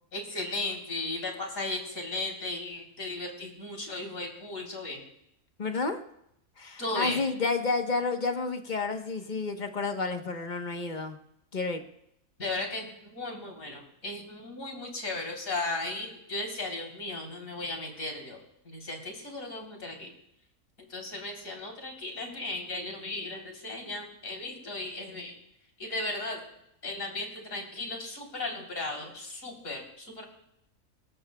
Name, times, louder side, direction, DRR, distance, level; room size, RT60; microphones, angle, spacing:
voice 1, 0.1-5.0 6.8-7.2 12.4-18.4 18.7-20.1 20.9-25.4 25.8-26.4 26.8-30.2, left 2 dB, 60° left, 1 dB, 4.0 m, -36 dB
voice 2, 5.6-6.0 6.6-11.2 11.5-11.8, left 4 dB, 35° left, 5 dB, 1.2 m, -30 dB
22.5 x 17.5 x 2.3 m, 0.78 s
omnidirectional pair, 1.6 m